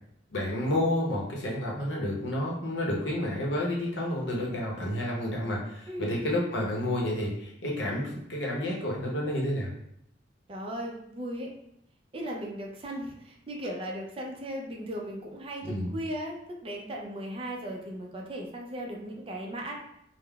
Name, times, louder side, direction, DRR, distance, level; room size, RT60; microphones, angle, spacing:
voice 1, 0.3-9.7 15.6-15.9, left 1 dB, 90° left, -3 dB, 0.8 m, -30 dB
voice 2, 5.9-6.2 10.5-11.5 12.1-13.1 13.5-16.4 16.6-19.7, right 1 dB, 30° right, 0 dB, 0.4 m, -37 dB
3.5 x 2.1 x 2.3 m, 0.76 s
head